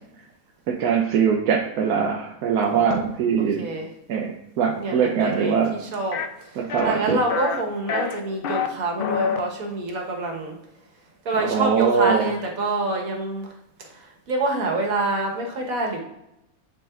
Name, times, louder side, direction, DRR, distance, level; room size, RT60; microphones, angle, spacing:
voice 1, 0.7-3.7 4.1-5.8 6.6-7.2 11.4-12.3, right 6 dB, 85° right, 3 dB, 1.1 m, -22 dB
voice 2, 2.7-3.0 3.4-3.9 4.8-10.6 11.2-13.5 13.8-16.0, right 2 dB, 70° right, 1 dB, 1.6 m, -27 dB
sound 1, 6.1-6.3 6.7-7.0 7.3-7.6 7.9-8.7 9.0-9.4, left 6 dB, 80° left, 0.5 m, -26 dB
9.9 x 4.0 x 2.4 m, 0.86 s
omnidirectional pair, 1.6 m